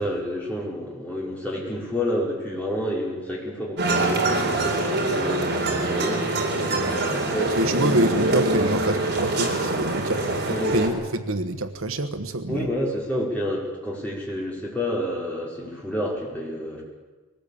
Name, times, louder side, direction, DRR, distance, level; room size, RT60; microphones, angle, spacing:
voice 1, 0.0-7.9 10.5-10.7 12.5-16.8, equal, 5° left, -4 dB, 5.3 m, -29 dB
sound 1, 3.8-10.9, right 2 dB, 55° right, 4.0 m, -24 dB
voice 2, 7.6-12.7, right 1 dB, 70° right, 9 dB, 1.3 m, -26 dB
21.5 x 19.0 x 8.7 m, 1.3 s
head